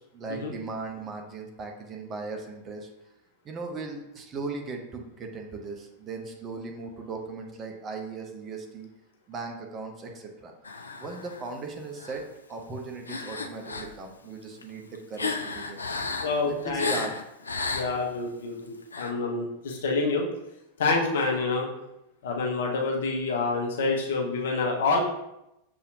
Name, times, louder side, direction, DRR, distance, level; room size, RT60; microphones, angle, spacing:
voice 1, 0.1-2.9 3.4-8.9 9.3-10.5 11.0-12.2 12.5-15.8 16.4-17.1, right 3 dB, 25° right, 2 dB, 0.7 m, -38 dB
sound 1, 10.6-11.5 12.0-12.3 13.1-14.0 14.4-18.2 18.8-19.1, left 3 dB, 75° left, 0.4 m, -33 dB
voice 2, 16.2-16.9 17.7-20.3 20.8-21.7 22.2-25.0, left 3 dB, 60° left, 0 dB, 0.8 m, -27 dB
6.6 x 2.7 x 2.5 m, 0.87 s
figure-of-eight pair, 90°, 0 cm